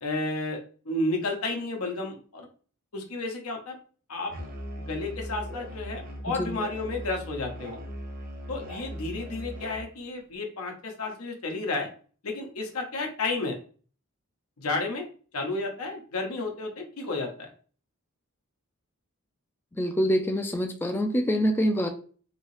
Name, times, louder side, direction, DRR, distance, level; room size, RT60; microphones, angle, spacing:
voice 1, 0.0-2.5 2.9-3.8 4.1-4.3 4.8-7.8 8.5-11.9 12.2-13.6 14.6-15.1 15.3-17.5, left 2 dB, 85° left, 2 dB, 0.8 m, -32 dB
Musical instrument, 4.3-9.9, equal, 45° right, 0.7 m, -39 dB
voice 2, 19.8-21.9, equal, 10° left, 4 dB, 0.3 m, -25 dB
3.0 x 2.7 x 3.1 m, 0.41 s
head